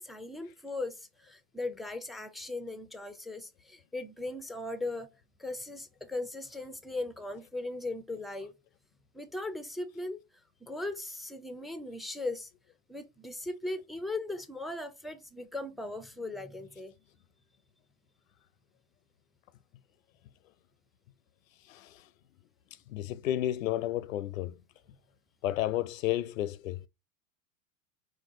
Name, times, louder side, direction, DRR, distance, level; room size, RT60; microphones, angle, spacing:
voice 1, 0.0-5.1 5.4-8.5 9.1-10.2 10.6-12.5 12.9-16.9, left 2 dB, ahead, 0.3 m, -38 dB
voice 2, 22.9-24.6 25.4-26.9, left 13 dB, 85° left, 0.5 m, -31 dB
4.5 x 2.3 x 3.6 m
hypercardioid pair, 100°, 39 cm